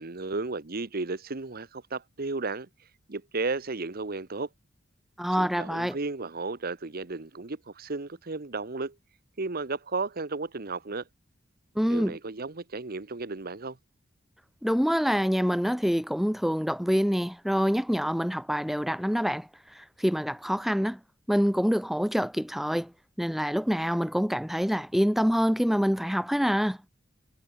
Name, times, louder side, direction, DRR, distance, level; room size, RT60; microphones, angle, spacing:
voice 1, 0.0-2.7 3.1-4.5 5.4-8.9 9.4-11.0 11.9-13.8, right 3 dB, 50° right, 1.2 m, -34 dB
voice 2, 5.2-6.0 11.7-12.2 14.6-19.5 19.7-21.0 21.3-22.9 23.2-26.8, equal, ahead, 1.2 m, -26 dB
head